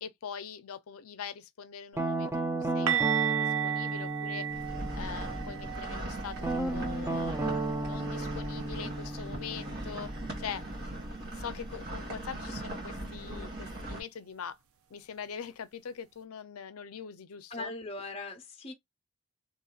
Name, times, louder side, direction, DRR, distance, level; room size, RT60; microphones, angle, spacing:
voice 1, 0.0-4.5 4.9-10.1 10.4-10.6 11.3-14.5 14.9-17.7, left 7 dB, 75° left, 0.5 m, -43 dB
Guitar, 2.0-5.7 6.4-11.1, right 2 dB, 10° right, 0.4 m, -34 dB
sound 1, 2.9-8.6 8.9-9.2 9.5-9.7 12.9-13.0, right 10 dB, 70° right, 0.5 m, -35 dB
sound 2, 4.5-14.0, right 1 dB, 45° right, 1.6 m, -39 dB
voice 2, 17.5-18.7, left 2 dB, 25° left, 0.8 m, -40 dB
3.0 x 2.7 x 2.3 m
head